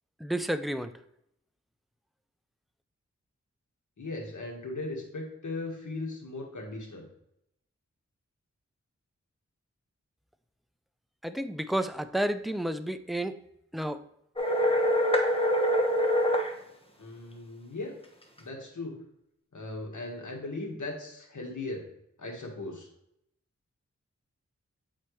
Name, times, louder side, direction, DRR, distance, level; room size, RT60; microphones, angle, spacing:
voice 1, 0.2-0.9 11.2-13.4 13.7-14.0, right 1 dB, ahead, 10 dB, 0.4 m, -31 dB
voice 2, 4.0-7.1 17.0-17.9 18.4-18.9 19.5-21.9 22.2-22.9, left 2 dB, 90° left, 0 dB, 1.5 m, -38 dB
sound 1, 14.4-16.5, equal, 20° left, 1.0 m, -24 dB
8.5 x 4.3 x 3.2 m, 0.78 s
wide cardioid pair, 55°, 29 cm